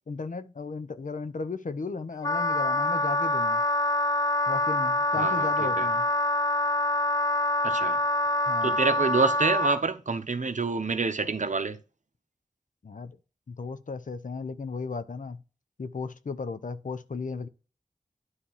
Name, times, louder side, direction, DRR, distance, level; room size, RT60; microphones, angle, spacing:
voice 1, 0.1-3.6 4.5-6.1 8.5-8.8 12.8-13.2 13.5-15.4 15.8-17.5, left 4 dB, 85° left, 0.7 m, -35 dB
Wind instrument woodwind instrument, 2.2-9.8, left 1 dB, 25° left, 0.4 m, -25 dB
voice 2, 5.2-5.5 5.8-5.9 7.6-8.0 8.6-11.8, right 4 dB, 70° right, 0.9 m, -27 dB
9.8 x 3.3 x 5.6 m
wide cardioid pair, 65°, 13 cm